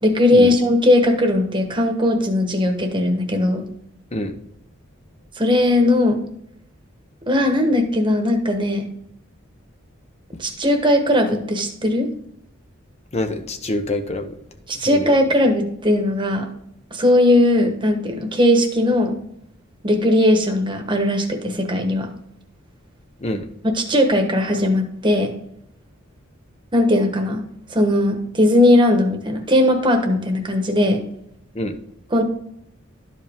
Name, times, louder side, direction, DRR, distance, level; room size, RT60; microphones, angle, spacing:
voice 1, 0.0-3.6 5.4-6.2 7.3-8.9 10.4-12.1 14.7-16.5 16.9-19.2 19.8-22.1 23.7-25.3 26.7-27.4 27.7-31.0 32.1-32.2, left 1 dB, 25° right, 4 dB, 1.2 m, -18 dB
voice 2, 13.1-14.4 14.8-15.1 23.2-23.5 31.5-31.8, left 1 dB, 30° left, 7 dB, 0.9 m, -26 dB
12.5 x 5.0 x 3.6 m, 0.76 s
head